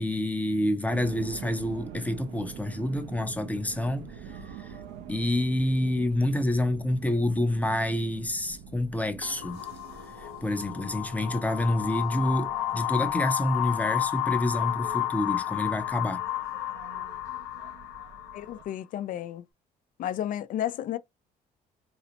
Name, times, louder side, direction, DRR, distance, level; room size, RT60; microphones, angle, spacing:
voice 1, 0.0-4.8 5.1-9.7 10.2-16.2, left 1 dB, 10° left, 0.6 m, -28 dB
sound 1, 0.9-18.6, right 7 dB, 85° right, 0.6 m, -46 dB
sound 2, 9.2-18.7, left 14 dB, 85° left, 0.8 m, -32 dB
voice 2, 18.3-19.4 20.0-21.0, left 11 dB, 55° left, 0.4 m, -32 dB
3.9 x 2.1 x 2.8 m
cardioid pair, 110°, 17 cm